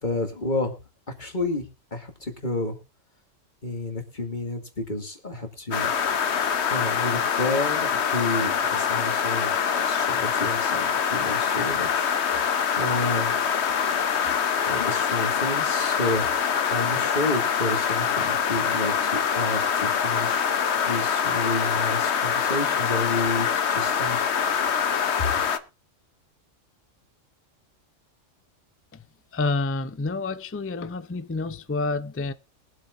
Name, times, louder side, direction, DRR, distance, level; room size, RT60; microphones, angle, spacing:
voice 1, 0.0-0.7 1.2-1.7 1.9-2.8 3.6-5.9 6.7-9.5 9.8-12.1 12.8-13.3 14.7-24.2, left 2 dB, 35° left, 2.5 m, -30 dB
sound 1, 5.7-25.6, left 7 dB, 60° left, 1.2 m, -24 dB
voice 2, 29.3-32.3, left 3 dB, 20° left, 0.4 m, -28 dB
23.0 x 8.1 x 2.6 m
omnidirectional pair, 1.3 m